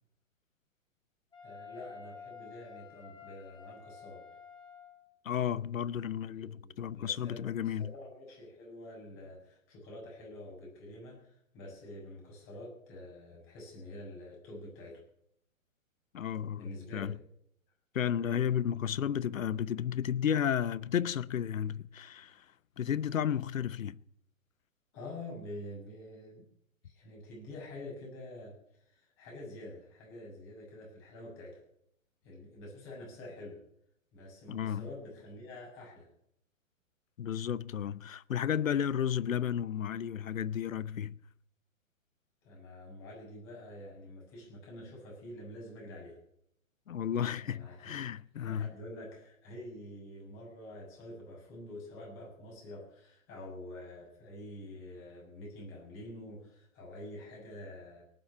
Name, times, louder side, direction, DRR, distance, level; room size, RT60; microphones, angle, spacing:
Wind instrument woodwind instrument, 1.3-5.1, left 6 dB, 10° left, 4.0 m, -50 dB
voice 1, 1.4-4.2 6.3-15.0 16.6-17.2 24.9-26.5 26.8-31.6 32.2-33.6 34.1-36.1 42.4-46.2 47.3-47.9 48.4-58.0, left 1 dB, 30° left, 7.0 m, -47 dB
voice 2, 5.2-7.9 16.1-17.2 17.9-22.4 22.8-24.0 34.5-34.8 37.2-41.2 46.9-48.7, left 9 dB, 75° left, 0.8 m, -33 dB
18.5 x 7.6 x 9.6 m
figure-of-eight pair, 120°, 40 cm